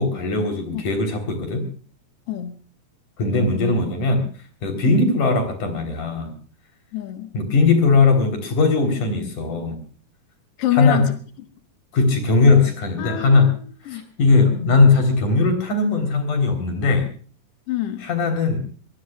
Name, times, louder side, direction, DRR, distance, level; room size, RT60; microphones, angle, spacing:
voice 1, 0.0-1.6 3.2-4.3 4.6-6.3 7.3-9.8 10.7-11.0 11.9-13.5 13.9-17.1 18.0-18.6, left 3 dB, 70° left, 6 dB, 5.3 m, -19 dB
voice 2, 6.9-7.3 10.6-11.1 13.0-14.1 17.7-18.1, left 14 dB, 55° left, 7 dB, 2.0 m, -26 dB
23.5 x 20.5 x 2.4 m, 0.41 s
omnidirectional pair, 3.7 m